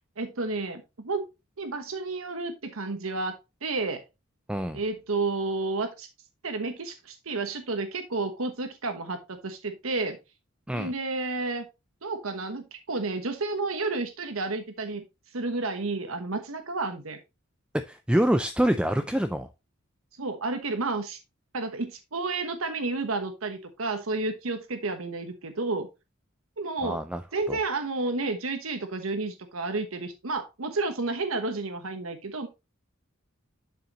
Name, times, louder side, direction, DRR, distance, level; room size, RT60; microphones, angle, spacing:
voice 1, 0.2-1.2 1.6-4.0 4.7-6.1 6.4-10.2 10.7-11.6 12.0-15.0 15.3-17.2 20.2-21.2 21.5-25.9 26.6-27.0 27.3-32.5, right 3 dB, 80° right, 7 dB, 1.1 m, -31 dB
voice 2, 4.5-4.8 10.7-10.9 17.9-19.5 26.8-27.2 27.5-27.6, right 1 dB, 5° right, 10 dB, 0.4 m, -26 dB
11.5 x 5.7 x 3.0 m, 0.25 s
head